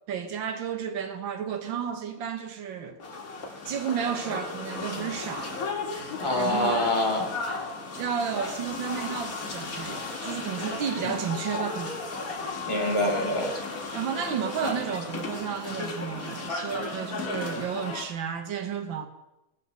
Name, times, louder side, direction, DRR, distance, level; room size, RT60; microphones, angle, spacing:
voice 1, 0.1-3.0 3.7-5.6 6.4-6.9 8.0-12.3 13.9-19.1, right 8 dB, 90° right, 1.9 m, -32 dB
sound 1, 3.0-18.1, left 3 dB, 50° left, 2.3 m, -35 dB
voice 2, 6.2-7.3 11.0-11.1 12.6-13.5, left 1 dB, 15° left, 3.3 m, -26 dB
18.0 x 7.3 x 6.7 m
omnidirectional pair, 2.0 m